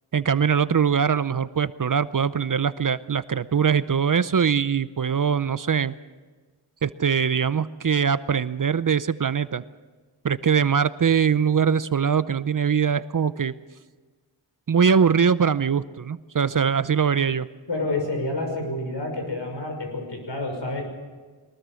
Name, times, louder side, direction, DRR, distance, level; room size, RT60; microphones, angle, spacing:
voice 1, 0.1-5.9 6.8-9.6 10.2-13.5 14.7-17.5, right 7 dB, 45° right, 15 dB, 0.7 m, -22 dB
voice 2, 17.7-20.8, left 2 dB, 70° left, 3 dB, 5.9 m, -29 dB
22.0 x 20.0 x 6.3 m, 1.4 s
wide cardioid pair, 65°, 45 cm